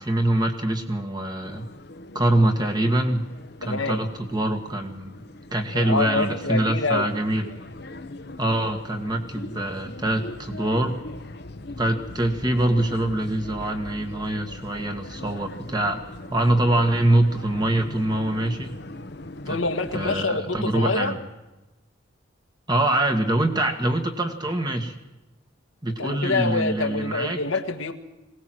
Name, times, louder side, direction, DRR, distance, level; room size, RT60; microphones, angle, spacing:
voice 1, 0.0-1.7 2.1-3.3 3.6-5.1 5.5-7.5 8.4-11.0 11.8-16.0 16.3-18.7 19.5-19.6 19.9-21.2 22.7-24.9 25.8-27.4, right 1 dB, 20° right, 5 dB, 1.8 m, -24 dB
sound 1, 1.4-20.3, left 2 dB, 55° left, 1.1 m, -40 dB
voice 2, 3.6-4.0 5.7-7.1 19.5-21.1 26.0-27.9, left 3 dB, 85° left, 5 dB, 1.8 m, -26 dB
21.5 x 18.0 x 7.8 m, 1.0 s
head